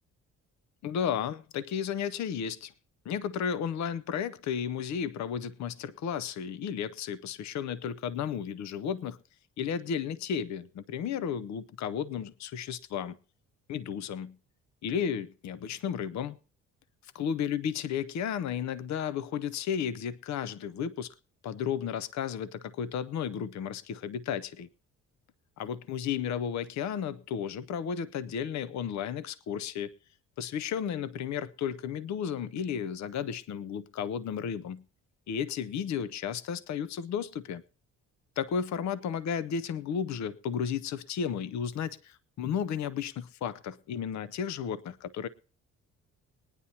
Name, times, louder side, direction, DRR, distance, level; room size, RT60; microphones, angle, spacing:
voice 1, 0.8-2.7 3.0-9.2 9.6-13.2 13.7-14.4 14.8-16.4 17.2-21.1 21.4-24.7 25.6-29.9 30.4-34.8 35.3-37.6 38.4-45.3, left 8 dB, 65° left, 0.7 m, -33 dB
21.0 x 9.8 x 2.8 m
cardioid pair, 90°, 30 cm